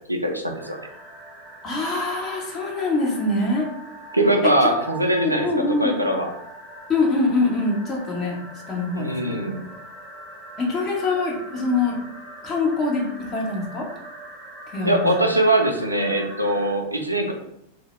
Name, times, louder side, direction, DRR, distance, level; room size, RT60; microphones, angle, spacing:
voice 1, 0.1-0.8 4.1-5.5 5.8-6.3 8.9-9.6 14.8-17.3, right 1 dB, 85° right, 3 dB, 0.3 m, -21 dB
sound 1, 0.5-16.7, right 1 dB, 30° right, 0.6 m, -42 dB
voice 2, 1.6-3.7 4.4-4.7 5.2-6.0 6.9-8.4 8.7-9.5 10.6-12.1 12.4-13.9 14.7-15.3, left 2 dB, 30° left, -1 dB, 0.7 m, -24 dB
2.1 x 2.0 x 3.0 m, 0.78 s
figure-of-eight pair, 90°, 0 cm